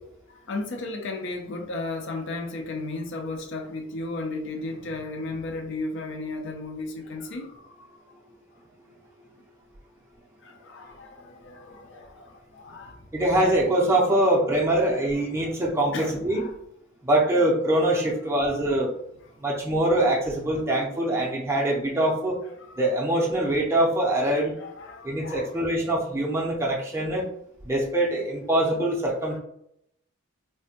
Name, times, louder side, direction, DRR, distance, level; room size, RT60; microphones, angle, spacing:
voice 1, 0.3-7.9 10.4-13.0 14.7-15.1 15.4-15.6 15.9-16.5 19.3-19.4 22.5-22.7 24.6-25.5 29.3-29.4, left 2 dB, 60° left, 0.5 m, -35 dB
voice 2, 13.1-16.4 17.0-18.9 19.4-22.4 22.8-24.5 25.0-27.3 27.6-29.4, right 1 dB, 10° right, 0.5 m, -23 dB
3.3 x 2.1 x 2.7 m
head